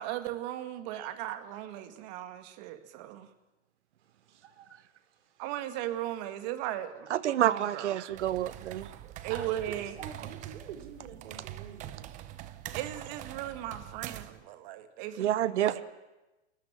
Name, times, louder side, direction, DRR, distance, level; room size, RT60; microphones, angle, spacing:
voice 1, 0.0-3.3 5.4-7.1 7.4-8.0 9.2-9.9 12.7-15.3 15.6-15.8, right 12 dB, 40° right, 2.1 m, -37 dB
voice 2, 4.0-5.5 8.4-8.7 9.3-12.1, right 8 dB, 60° right, 4.6 m, -48 dB
voice 3, 7.1-8.9 15.2-15.8, right 12 dB, 75° right, 1.3 m, -28 dB
sound 1, 8.1-14.4, right 13 dB, 20° right, 0.9 m, -44 dB
30.0 x 14.0 x 9.0 m
supercardioid pair, 160°, 35 cm